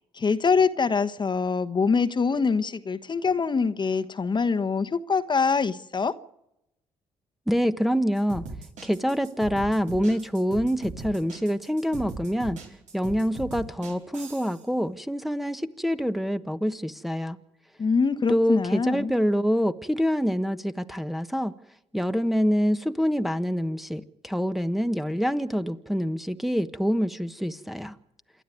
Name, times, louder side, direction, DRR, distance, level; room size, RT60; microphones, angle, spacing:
voice 1, 0.0-6.1 17.8-19.1, left 5 dB, 35° left, 1.2 m, -24 dB
voice 2, 7.5-8.4 8.8-12.6 12.9-17.4 18.3-21.5 21.9-27.9, equal, ahead, 1.2 m, -26 dB
sound 1, 8.1-14.6, right 3 dB, 70° right, 4.9 m, -39 dB
27.5 x 11.5 x 9.3 m
supercardioid pair, 60°, 13 cm